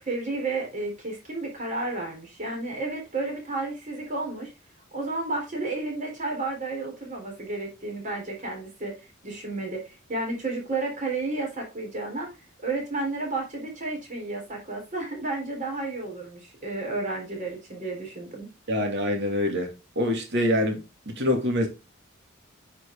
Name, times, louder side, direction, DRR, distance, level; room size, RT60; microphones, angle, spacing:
voice 1, 0.0-4.5 4.9-8.9 9.2-12.3 12.6-18.5, right 2 dB, 40° right, 4.0 m, -32 dB
voice 2, 18.7-20.8 21.1-21.7, left 1 dB, 55° right, 2.5 m, -25 dB
9.7 x 4.8 x 3.8 m
head